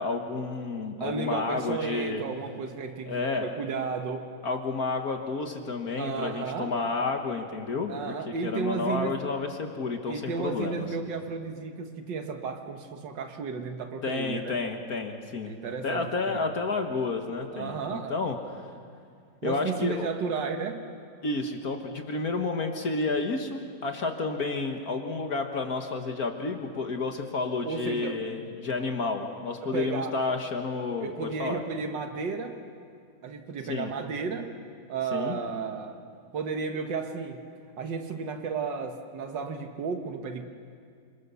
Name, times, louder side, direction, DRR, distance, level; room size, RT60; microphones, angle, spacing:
voice 1, 0.0-2.2 3.1-3.5 4.4-8.0 8.3-10.8 14.0-15.5 15.8-18.4 19.4-20.1 21.2-31.6 33.7-33.9 35.1-35.4, left 3 dB, 60° left, 4 dB, 1.8 m, -30 dB
voice 2, 1.0-4.3 6.0-6.8 7.9-9.1 10.1-14.6 15.4-16.5 17.5-18.3 19.4-20.9 27.6-28.2 29.7-30.2 31.0-32.6 33.2-34.6 34.9-36.0 36.3-37.4 37.8-40.4, right 5 dB, 90° right, 5 dB, 2.0 m, -33 dB
28.0 x 26.0 x 6.9 m, 2.2 s
omnidirectional pair, 1.9 m